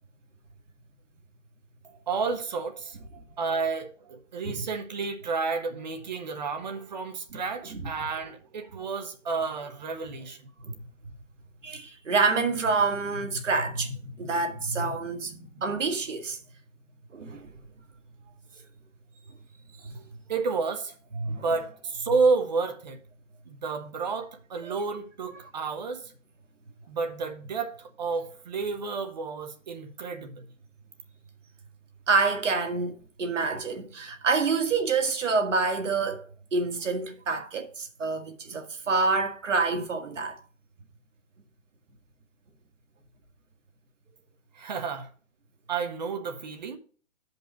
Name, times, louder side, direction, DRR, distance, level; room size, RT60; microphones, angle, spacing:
voice 1, 2.1-3.0 3.4-10.4 19.9-20.0 20.3-23.0 23.5-26.0 26.9-30.4 44.6-45.1 45.7-46.8, right 4 dB, 35° right, 0.9 m, -31 dB
voice 2, 11.6-16.4 17.1-17.5 19.8-19.9 21.1-21.4 24.6-24.8 32.1-36.2 36.5-40.4, right 4 dB, 75° right, 1.8 m, -27 dB
8.1 x 5.4 x 5.2 m
hypercardioid pair, 165°, 37 cm